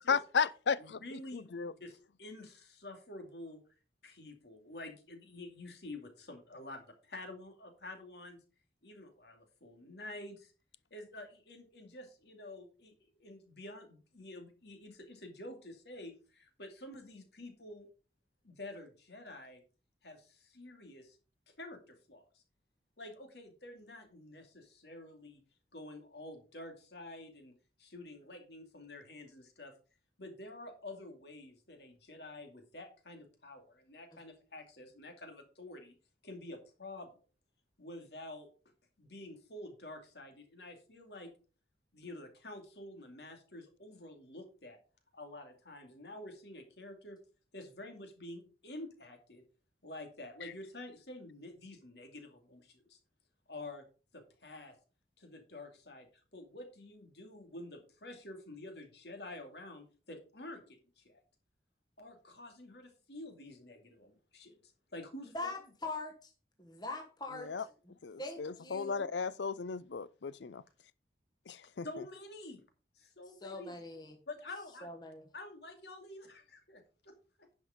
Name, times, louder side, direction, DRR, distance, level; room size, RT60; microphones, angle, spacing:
voice 1, 0.1-1.7 50.4-50.5 67.4-67.6 68.0-70.6 71.5-71.9, left 6 dB, 90° left, 0.5 m, -35 dB
voice 2, 0.8-3.6 4.0-8.4 8.8-10.5 10.9-12.9 13.2-17.9 18.4-19.6 20.0-21.2 21.6-22.4 23.0-25.4 25.7-27.5 27.8-29.7 30.2-35.9 36.2-37.1 37.8-38.5 39.0-41.3 41.9-44.8 45.1-47.2 47.5-49.4 49.8-53.0 53.5-53.8 54.1-54.7 55.2-56.1 56.3-61.2 62.0-65.5 71.8-72.6 72.9-73.8 74.3-74.9 75.3-77.5, left 2 dB, 70° left, 2.5 m, -49 dB
voice 3, 65.3-66.3 66.6-67.5 68.2-69.1 73.4-74.2 74.8-75.2, left 2 dB, 25° left, 1.3 m, -42 dB
10.5 x 5.4 x 5.1 m
head